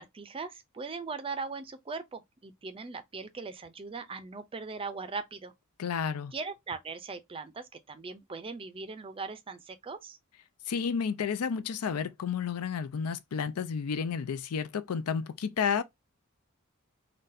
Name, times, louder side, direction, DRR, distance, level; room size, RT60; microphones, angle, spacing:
voice 1, 0.0-5.5 6.3-10.2, right 4 dB, 25° right, 0.4 m, -39 dB
voice 2, 5.8-6.3 10.7-15.8, left 6 dB, 80° left, 0.4 m, -31 dB
3.9 x 2.2 x 2.6 m
head